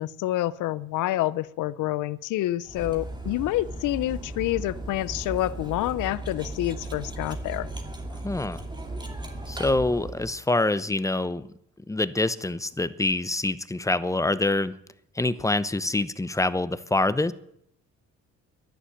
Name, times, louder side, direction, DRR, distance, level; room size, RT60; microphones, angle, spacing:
voice 1, 0.0-7.7, left 15 dB, 85° left, 19 dB, 0.6 m, -28 dB
Cutlery silverware, 2.7-10.4, right 2 dB, 15° right, 2.9 m, -36 dB
voice 2, 8.2-8.6 9.5-11.5 11.9-14.8 15.1-17.3, left 2 dB, 10° left, 15 dB, 0.8 m, -25 dB
11.0 x 10.5 x 10.0 m, 0.73 s
cardioid pair, 90°, 30 cm